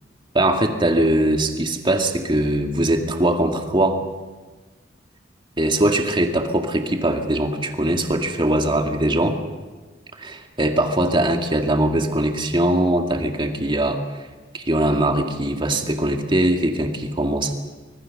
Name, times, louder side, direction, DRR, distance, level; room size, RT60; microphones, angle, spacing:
voice 1, 0.3-4.0 5.6-9.4 10.2-14.0 14.5-17.5, right 1 dB, 25° right, 4 dB, 2.1 m, -21 dB
25.5 x 20.0 x 6.7 m, 1.3 s
head